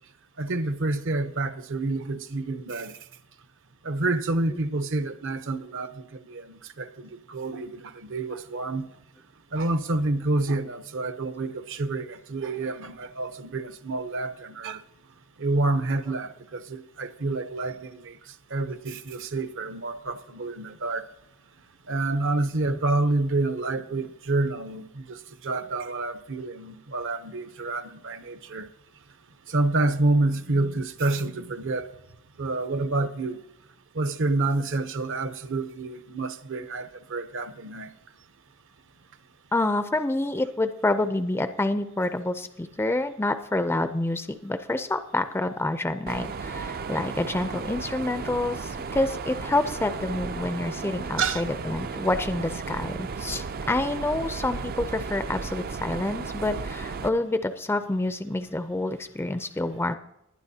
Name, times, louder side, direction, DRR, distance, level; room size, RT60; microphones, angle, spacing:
voice 1, 0.4-3.0 3.8-8.9 9.5-14.8 15.4-21.0 21.9-28.7 29.5-31.9 32.4-33.4 33.9-37.9 51.2-51.4, right 2 dB, 60° right, 0.8 m, -28 dB
voice 2, 39.5-60.0, left 2 dB, 10° left, 0.4 m, -28 dB
Mechanisms, 46.1-57.1, right 4 dB, 45° right, 0.4 m, -34 dB
20.5 x 10.0 x 2.8 m
head